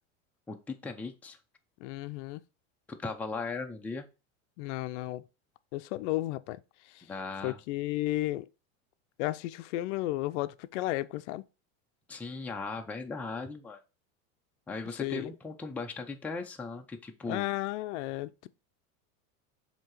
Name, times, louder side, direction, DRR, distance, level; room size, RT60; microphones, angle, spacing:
voice 1, 0.5-1.4 3.0-4.1 7.1-7.6 12.1-13.8 14.7-17.4, left 3 dB, 5° left, 0.5 m, -38 dB
voice 2, 1.8-2.4 4.6-5.2 5.7-6.6 6.9-7.1 7.4-8.5 9.2-11.4 14.9-15.3 17.3-18.5, left 17 dB, 60° left, 0.5 m, -33 dB
7.3 x 2.8 x 4.6 m
supercardioid pair, 130°, 40 cm